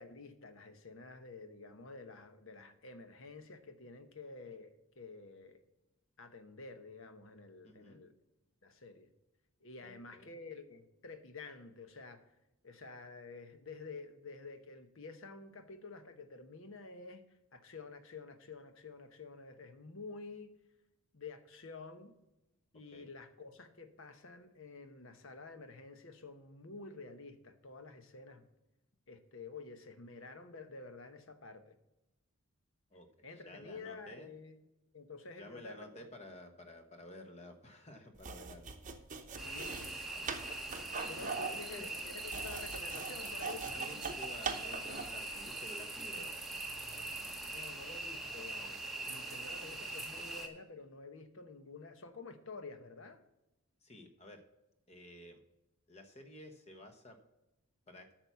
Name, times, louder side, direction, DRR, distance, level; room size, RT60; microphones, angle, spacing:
voice 1, 0.0-5.6 6.2-8.1 8.6-9.1 9.6-12.3 12.6-17.2 17.5-20.5 21.1-22.1 22.7-28.4 29.1-31.8 33.2-34.6 34.9-36.1 39.4-40.4 41.1-44.0 47.5-53.2, left 3 dB, 60° left, 9 dB, 1.0 m, -50 dB
voice 2, 7.6-8.0 9.8-10.4 22.9-23.1 32.9-34.3 35.4-38.8 39.6-40.2 41.0-41.9 43.8-46.3 53.8-54.4 54.9-55.4 55.9-57.2 57.9-58.1, left 1 dB, 30° left, 6 dB, 1.1 m, -52 dB
sound 1, 38.2-45.2, right 5 dB, 35° right, 0.8 m, -42 dB
sound 2, 39.4-50.5, right 2 dB, ahead, 0.9 m, -42 dB
8.8 x 6.0 x 6.8 m, 0.96 s
head